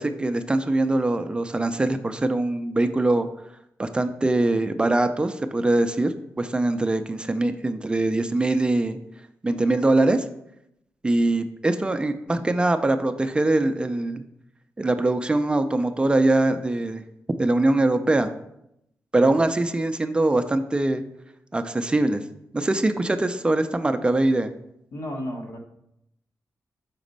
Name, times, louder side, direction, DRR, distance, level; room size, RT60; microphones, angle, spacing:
voice 1, 0.0-3.3 3.8-9.0 9.4-10.2 11.0-14.2 14.8-17.0 17.4-18.3 19.1-21.0 21.5-22.2 22.5-24.5, right 2 dB, 20° right, 8 dB, 0.4 m, -22 dB
voice 2, 24.9-25.6, equal, 75° left, 2 dB, 1.2 m, -33 dB
5.9 x 4.1 x 5.2 m, 0.79 s
wide cardioid pair, 160°, 6 cm